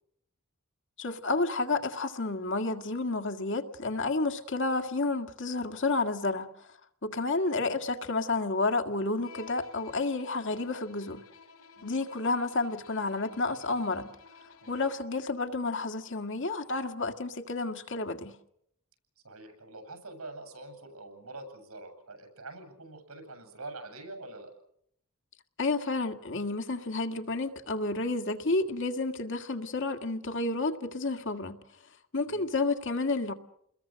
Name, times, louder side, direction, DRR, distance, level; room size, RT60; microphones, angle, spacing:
voice 1, 1.0-6.5 7.0-11.2 11.8-14.1 14.7-18.3 25.6-31.6 32.1-33.3, left 3 dB, 55° left, 1.9 m, -30 dB
Bowed string instrument, 9.2-15.2, left 5 dB, 75° left, 4.2 m, -53 dB
voice 2, 19.2-24.5 32.3-32.5, right 2 dB, 80° right, 8.0 m, -45 dB
29.5 x 21.5 x 6.5 m
head